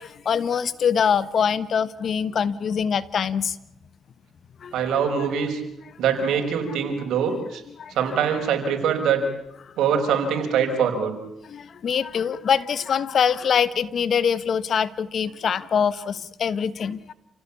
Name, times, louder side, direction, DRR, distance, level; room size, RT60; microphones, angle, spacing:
voice 1, 0.0-3.5 4.6-4.7 7.8-7.9 11.5-17.1, left 7 dB, 55° left, 17 dB, 1.2 m, -24 dB
voice 2, 4.7-5.6 6.0-7.6 7.9-9.2 9.8-11.2, right 7 dB, 80° right, 5 dB, 5.3 m, -23 dB
29.0 x 17.0 x 8.6 m, 0.85 s
cardioid pair, 90°, 0 cm